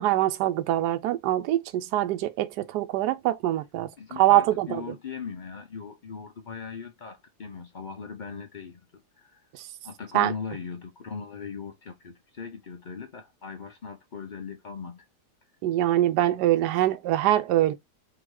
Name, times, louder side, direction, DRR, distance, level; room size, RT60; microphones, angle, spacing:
voice 1, 0.0-3.9 4.2-4.9 9.5-9.7 10.1-10.3 15.6-17.7, right 14 dB, 80° right, 1.2 m, -24 dB
voice 2, 4.0-9.5 9.8-15.0, left 6 dB, 65° left, 0.4 m, -39 dB
3.8 x 2.8 x 4.7 m
omnidirectional pair, 1.8 m